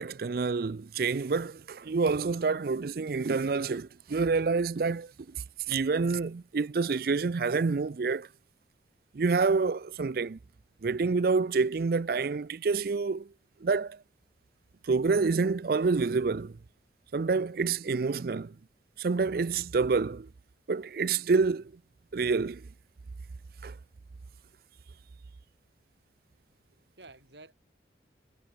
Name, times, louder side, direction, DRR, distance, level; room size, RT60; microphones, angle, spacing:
voice 1, 0.0-5.4 5.7-8.3 9.1-10.4 10.8-13.3 13.6-14.0 14.9-16.6 17.1-18.5 19.0-20.3 20.7-21.7 22.1-22.6 23.6-23.7, right 4 dB, 55° right, 0.4 m, -28 dB
voice 2, 26.5-27.5, right 2 dB, 70° right, 7.7 m, -53 dB
head